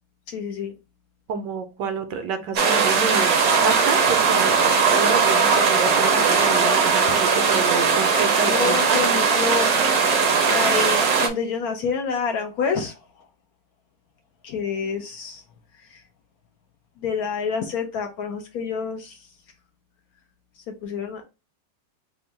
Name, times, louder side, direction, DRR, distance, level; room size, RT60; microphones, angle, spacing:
voice 1, 0.3-0.7 7.2-7.6 8.4-10.1 10.4-13.3 14.4-15.4 15.7-16.0 17.0-19.3 20.8-21.2, left 5 dB, 65° left, 5 dB, 1.0 m, -28 dB
voice 2, 1.3-9.0, right 5 dB, 80° right, 8 dB, 1.3 m, -28 dB
sound 1, 2.6-11.3, right 5 dB, 65° right, 1.0 m, -19 dB
3.5 x 2.2 x 3.9 m, 0.29 s
omnidirectional pair, 1.9 m